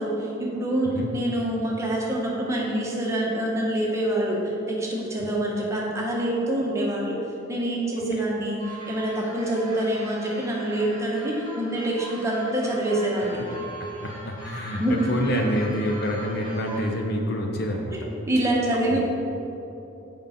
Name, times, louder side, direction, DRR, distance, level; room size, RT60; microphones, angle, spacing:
voice 1, 0.0-4.4 4.7-7.2 7.5-13.4 14.8-15.3 17.9-19.0, right 1 dB, 15° right, -4 dB, 1.2 m, -26 dB
sound 1, 8.6-16.9, right 2 dB, 20° left, 1.6 m, -41 dB
voice 2, 13.8-18.0 18.9-19.0, left 1 dB, 50° left, 1 dB, 0.7 m, -27 dB
7.9 x 5.4 x 5.1 m, 2.9 s
head